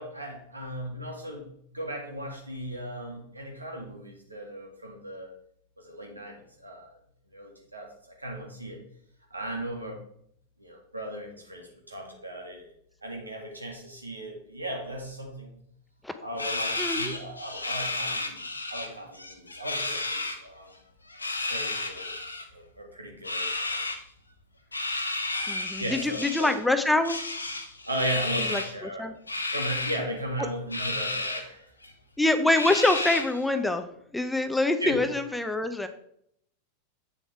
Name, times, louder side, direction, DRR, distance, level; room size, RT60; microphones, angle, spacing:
voice 1, 0.0-5.3 5.8-6.9 7.3-7.9 8.2-8.8 9.3-10.0 10.6-12.7 13.0-15.5 16.2-20.7 21.5-22.1 22.5-23.8 25.8-26.5 27.9-29.1 29.5-31.7 34.8-35.0, right 1 dB, 80° right, 1 dB, 2.1 m, -36 dB
sound 1, 16.4-18.9 19.1-20.4 21.1-22.4 23.2-24.0 24.7-26.6 27.0-28.7 29.3-30.0 30.7-31.4 31.8-31.9 32.5-33.4, left 2 dB, 80° left, 1.0 m, -32 dB
voice 2, 16.8-17.1 25.5-27.2 28.5-29.1 32.2-33.9 34.1-35.9, left 2 dB, 5° left, 8 dB, 0.7 m, -25 dB
8.5 x 7.0 x 3.4 m, 0.69 s
figure-of-eight pair, 90°, 0 cm